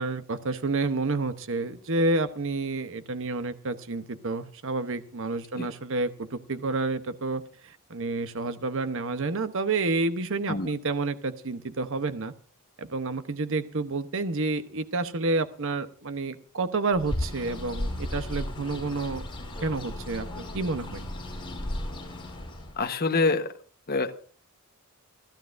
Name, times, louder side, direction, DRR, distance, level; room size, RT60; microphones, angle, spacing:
voice 1, 0.0-12.3 12.8-19.2 19.6-21.0, right 3 dB, 60° right, 10 dB, 0.9 m, -29 dB
Bird, 16.9-22.8, left 1 dB, 25° left, 5.0 m, -35 dB
voice 2, 22.8-23.5 23.9-24.1, left 3 dB, 45° left, 6 dB, 1.2 m, -25 dB
29.5 x 12.0 x 2.6 m, 0.41 s
head